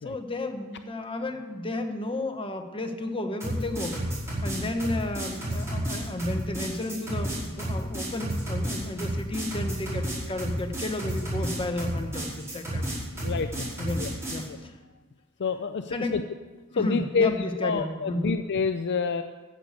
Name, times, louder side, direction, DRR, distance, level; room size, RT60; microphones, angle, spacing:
voice 1, 0.0-4.0 4.4-13.3 13.8-14.0 14.3-14.7 15.9-16.2 16.7-18.3, left 2 dB, 25° left, 5 dB, 1.2 m, -32 dB
sound 1, 3.4-14.4, right 1 dB, 15° right, 5.4 m, -31 dB
voice 2, 13.2-13.7 14.0-14.1 15.4-16.2 16.8-19.2, left 5 dB, 50° left, 9 dB, 0.5 m, -27 dB
14.5 x 6.7 x 8.3 m, 1.4 s
head